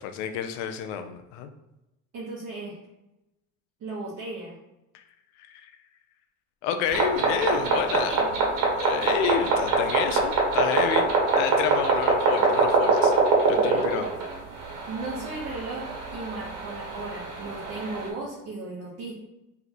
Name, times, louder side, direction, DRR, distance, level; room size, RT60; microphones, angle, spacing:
voice 1, 0.0-1.5 5.5-5.7 6.6-8.2 8.8-11.1 11.4-13.1 13.5-14.1, left 8 dB, 90° left, 7 dB, 0.6 m, -29 dB
voice 2, 2.1-2.8 3.8-4.5 8.1-8.3 9.1-9.2 13.5-13.8 14.9-19.1, right 3 dB, 45° right, -6 dB, 1.0 m, -36 dB
sound 1, 6.9-18.1, right 3 dB, 60° right, 1.3 m, -24 dB
3.9 x 3.4 x 2.9 m, 0.94 s
cardioid pair, 125°, 36 cm